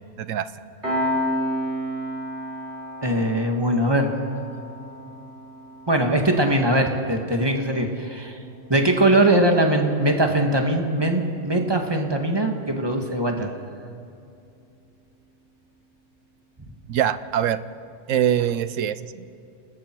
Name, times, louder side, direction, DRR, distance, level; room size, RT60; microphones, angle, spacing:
Piano, 0.8-11.9, equal, 55° right, 4.9 m, -33 dB
voice 1, 3.0-4.1 5.9-8.4 8.7-13.5, right 1 dB, 20° right, 3 dB, 1.8 m, -21 dB
voice 2, 16.9-17.6 18.1-19.3, right 10 dB, 85° right, 14 dB, 1.1 m, -23 dB
28.5 x 19.5 x 4.6 m, 2.5 s
omnidirectional pair, 1.3 m